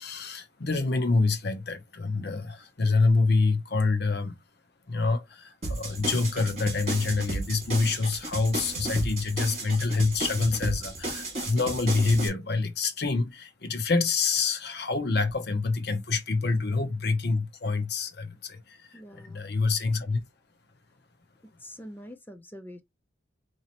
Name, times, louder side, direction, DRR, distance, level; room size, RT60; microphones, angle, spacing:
voice 1, 0.0-4.3 4.9-20.2, left 3 dB, 55° left, 0.7 m, -26 dB
sound 1, 5.6-12.3, right 2 dB, 35° right, 1.9 m, -34 dB
voice 2, 18.9-19.5 21.6-22.8, equal, 10° left, 0.4 m, -45 dB
4.0 x 2.8 x 2.9 m
head